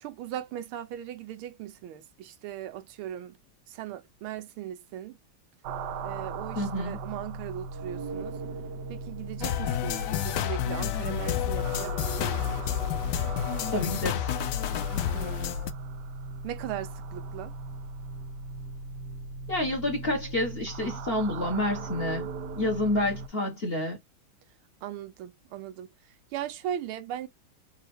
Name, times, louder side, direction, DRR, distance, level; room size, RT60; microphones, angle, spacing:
voice 1, 0.0-3.4 3.7-5.2 6.0-8.4 8.9-12.5 15.1-15.7 16.4-17.5 24.8-25.9 26.3-27.3, right 11 dB, 90° right, 1.6 m, -38 dB
sound 1, 5.6-23.3, right 3 dB, 70° right, 1.1 m, -38 dB
voice 2, 6.5-7.0 13.7-14.4 19.5-22.3 22.6-24.0, left 1 dB, 30° left, 1.4 m, -29 dB
sound 2, 9.4-15.7, left 10 dB, 70° left, 1.1 m, -30 dB
4.3 x 2.8 x 4.3 m
omnidirectional pair, 2.3 m